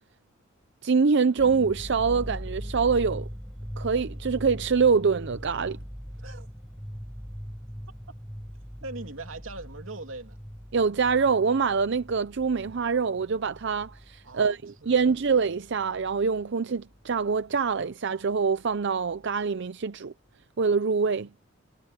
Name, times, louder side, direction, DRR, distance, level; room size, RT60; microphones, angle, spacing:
voice 1, 0.8-3.3 3.8-5.8 10.7-20.1 20.6-21.3, right 5 dB, 65° right, 0.6 m, -25 dB
sound 1, 1.4-16.5 16.7-17.9 18.2-18.3 18.7-19.3, equal, ahead, 5.7 m, -41 dB
voice 2, 6.2-6.5 8.8-10.4 14.2-15.1, right 2 dB, 90° right, 2.8 m, -41 dB
head